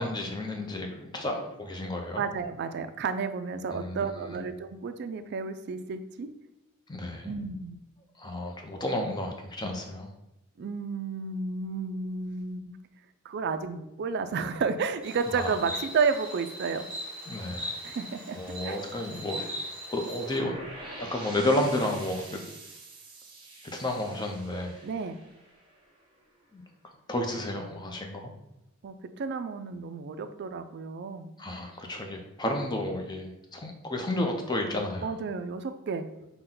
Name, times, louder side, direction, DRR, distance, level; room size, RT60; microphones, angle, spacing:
voice 1, 0.0-2.2 3.7-4.4 6.9-7.4 8.2-10.1 15.3-15.6 17.3-17.7 18.3-19.4 19.9-20.5 20.9-22.4 23.7-24.8 26.5-26.6 27.1-28.3 31.4-35.2, left 1 dB, 20° left, 3 dB, 0.6 m, -32 dB
voice 2, 2.2-6.3 7.2-7.8 10.6-12.7 13.2-16.8 17.8-18.4 18.6-18.8 24.8-25.2 28.8-31.3 35.0-36.1, right 5 dB, 50° right, 9 dB, 0.3 m, -31 dB
Insect, 15.0-20.4, equal, 10° right, 1.4 m, -39 dB
sound 1, 20.3-26.2, right 2 dB, 25° right, 0.8 m, -45 dB
5.8 x 2.2 x 3.8 m, 0.89 s
head